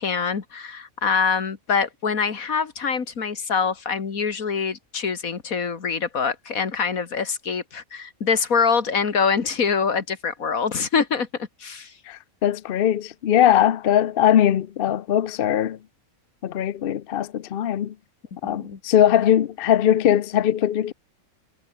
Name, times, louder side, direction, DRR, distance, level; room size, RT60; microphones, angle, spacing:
voice 1, 0.0-11.9 18.4-18.8, left 5 dB, 75° left, 2.3 m, -25 dB
voice 2, 12.1-15.8 16.4-17.9 18.4-20.9, left 10 dB, 55° left, 0.7 m, -20 dB
omnidirectional pair, 1.5 m